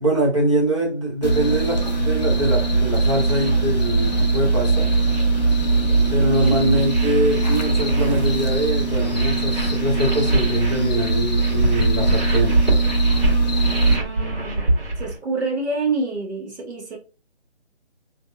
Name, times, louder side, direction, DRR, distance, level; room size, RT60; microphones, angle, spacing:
voice 1, 0.0-4.9 6.1-12.6, right 1 dB, 30° right, 0.6 m, -23 dB
sound 1, 1.2-14.0, right 3 dB, 40° left, 0.4 m, -21 dB
sound 2, 2.3-15.2, right 2 dB, 50° right, 1.4 m, -26 dB
voice 2, 14.0-14.6 15.0-17.0, right 3 dB, 75° right, 1.2 m, -27 dB
2.7 x 2.0 x 2.3 m
figure-of-eight pair, 165°, 34 cm